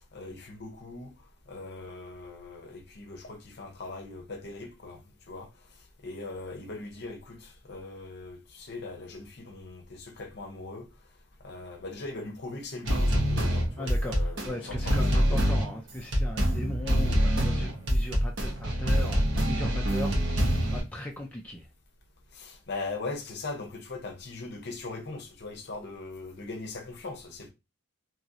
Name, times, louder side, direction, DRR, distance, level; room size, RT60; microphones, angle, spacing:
voice 1, 0.1-1.1 1.5-5.0 5.3-5.5 6.0-10.9 11.4-15.4 22.3-27.5, left 3 dB, 50° left, 0.7 m, -40 dB
sound 1, 12.8-20.8, equal, 65° right, 1.0 m, -25 dB
voice 2, 13.8-21.7, left 1 dB, 5° left, 0.3 m, -38 dB
3.0 x 2.8 x 2.4 m
head